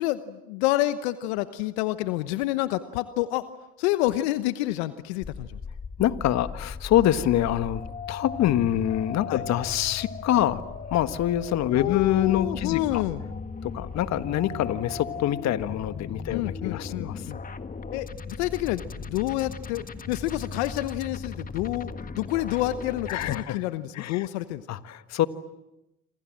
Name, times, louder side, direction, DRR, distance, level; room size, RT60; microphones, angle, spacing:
voice 1, 0.0-3.4 3.8-5.6 9.3-9.4 11.7-13.2 16.3-17.4 17.9-21.9 22.2-24.7, left 16 dB, 80° left, 12 dB, 1.1 m, -28 dB
sound 1, 5.2-23.4, left 5 dB, 25° left, 1.7 m, -38 dB
voice 2, 6.0-10.6 10.9-13.0 13.6-17.2 23.1-23.6 23.9-24.2 24.7-25.3, left 12 dB, 55° left, 12 dB, 1.5 m, -25 dB
28.0 x 26.5 x 7.6 m, 0.93 s
hypercardioid pair, 75°, 32 cm